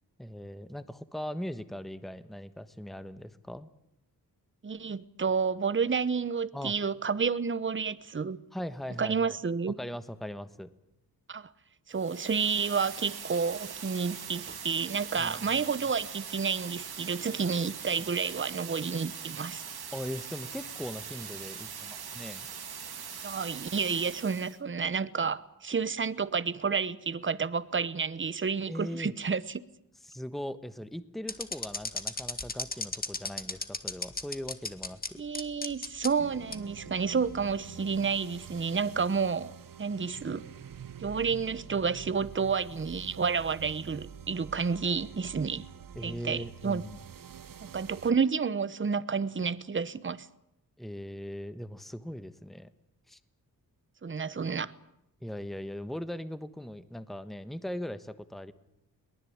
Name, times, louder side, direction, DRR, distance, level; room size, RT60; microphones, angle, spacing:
voice 1, 0.2-3.7 6.5-6.7 8.5-9.4 9.8-10.7 15.2-15.5 19.9-22.5 28.7-29.1 30.0-35.2 45.9-47.0 50.8-52.7 53.1-53.2 55.2-58.5, equal, ahead, 1.2 m, -39 dB
voice 2, 4.6-8.4 9.0-9.7 11.3-11.5 11.9-19.7 23.2-29.6 35.2-39.5 39.8-40.4 41.0-45.6 46.0-46.8 47.6-50.3 54.0-54.7, right 5 dB, 30° right, 1.0 m, -30 dB
sound 1, 11.9-24.6, right 7 dB, 75° right, 2.6 m, -42 dB
sound 2, 31.3-35.1 35.3-36.1 36.5-36.6 37.3-37.5, left 3 dB, 25° left, 1.9 m, -34 dB
sound 3, 36.2-48.1, right 8 dB, 60° right, 1.1 m, -47 dB
22.5 x 19.5 x 8.7 m
cardioid pair, 85°, 38 cm